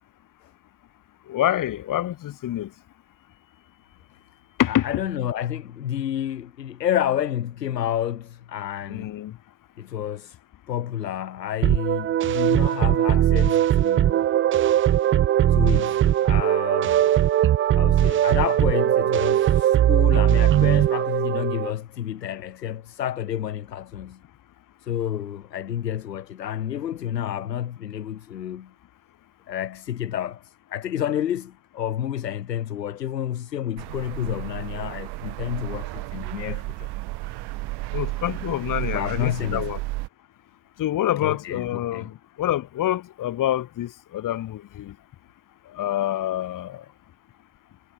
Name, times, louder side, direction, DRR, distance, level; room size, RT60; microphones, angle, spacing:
voice 1, 1.3-2.7 4.6-4.9 8.9-9.4 37.9-39.8 40.8-44.9 45.7-46.8, left 13 dB, 40° left, 2.1 m, -26 dB
voice 2, 4.7-9.1 9.8-10.4 10.7-14.2 15.5-17.1 17.8-24.2 24.8-28.7 29.5-36.9 38.9-39.7 41.2-42.1, left 10 dB, 80° left, 1.2 m, -30 dB
sound 1, 11.6-21.7, right 12 dB, 25° right, 0.6 m, -20 dB
sound 2, 33.8-40.1, right 21 dB, 50° right, 3.0 m, -33 dB
figure-of-eight pair, 65°, 49 cm